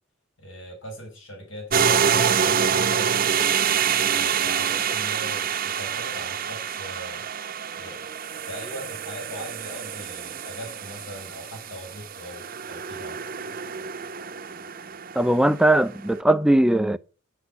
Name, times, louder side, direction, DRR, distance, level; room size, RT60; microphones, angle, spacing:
voice 1, 0.4-3.3 4.1-7.3 7.7-8.1 8.4-13.2, equal, 75° left, 5.0 m, -40 dB
sound 1, 1.7-15.8, right 7 dB, 45° right, 0.8 m, -26 dB
voice 2, 15.2-17.0, right 1 dB, 5° right, 0.4 m, -19 dB
9.6 x 8.1 x 5.4 m
head